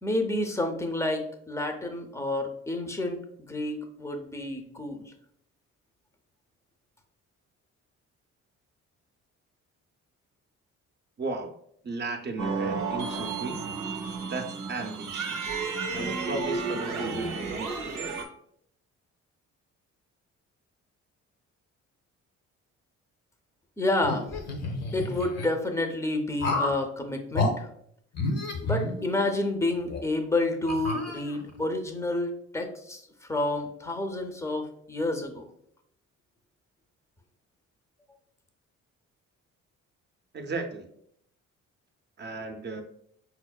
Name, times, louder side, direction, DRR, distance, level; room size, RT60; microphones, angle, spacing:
voice 1, 0.0-3.2 3.5-5.1 23.8-24.3 24.9-27.7 28.6-33.0 33.3-35.5, left 2 dB, 10° left, 4 dB, 0.5 m, -29 dB
voice 2, 11.2-11.6 11.8-13.6 13.9-15.6 15.9-18.2 40.3-40.9 42.2-42.8, right 3 dB, 35° right, 4 dB, 0.6 m, -36 dB
sound 1, 12.4-18.2, right 4 dB, 90° right, 0.6 m, -32 dB
sound 2, 24.0-25.5 26.4-26.8 27.3-27.5 28.1-29.4 29.9-30.0 30.7-31.6, left 2 dB, 60° left, 0.7 m, -30 dB
5.6 x 2.0 x 2.2 m, 0.69 s
cardioid pair, 90°, 30 cm